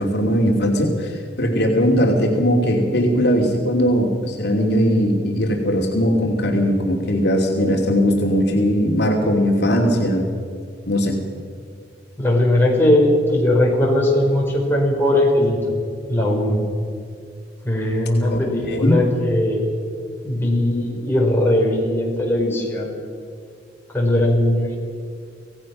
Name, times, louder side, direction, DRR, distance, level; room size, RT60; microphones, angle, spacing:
voice 1, 0.0-10.3 10.9-11.2 18.3-18.4 18.7-19.0, equal, 65° left, 0 dB, 2.8 m, -19 dB
voice 2, 12.2-15.6 16.1-16.6 17.6-19.7 20.2-23.1 23.9-24.8, left 1 dB, 15° left, -2 dB, 4.7 m, -19 dB
26.0 x 17.5 x 6.2 m, 2.3 s
head